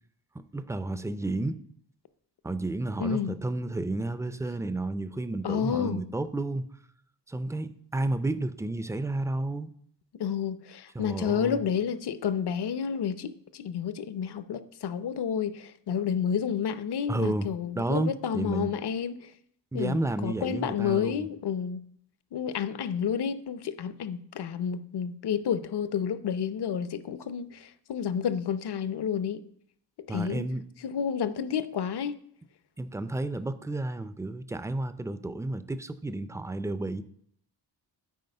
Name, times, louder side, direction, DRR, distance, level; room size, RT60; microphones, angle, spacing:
voice 1, 0.3-1.6 2.4-6.7 7.3-9.7 10.9-11.6 17.1-17.5 17.8-18.7 19.7-21.3 30.1-30.6 32.8-37.0, right 2 dB, 5° right, 0.4 m, -31 dB
voice 2, 3.0-3.4 5.4-6.0 10.1-19.3 19.7-20.0 20.2-21.8 22.3-29.4 30.0-30.5 30.8-32.2, left 7 dB, 65° left, 0.7 m, -30 dB
9.4 x 4.8 x 6.6 m
wide cardioid pair, 150°, 42 cm